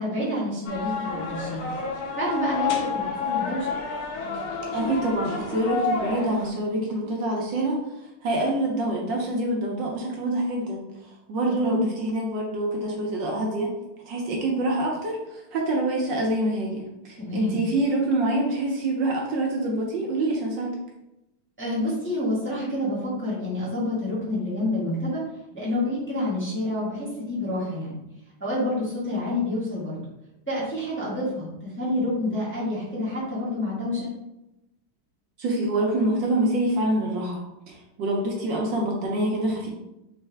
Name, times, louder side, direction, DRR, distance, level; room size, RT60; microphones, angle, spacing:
voice 1, 0.0-1.7 2.2-3.7 11.4-11.8 17.2-17.6 21.6-25.2 25.5-27.9 28.4-30.0 30.5-34.1, left 1 dB, 5° left, -8 dB, 1.1 m, -28 dB
sound 1, 0.7-6.5, left 5 dB, 65° left, 0.9 m, -29 dB
voice 2, 4.7-10.8 11.3-13.7 14.1-20.7 35.4-39.7, right 1 dB, 70° right, -1 dB, 1.4 m, -26 dB
4.4 x 3.1 x 3.3 m, 0.91 s
omnidirectional pair, 2.2 m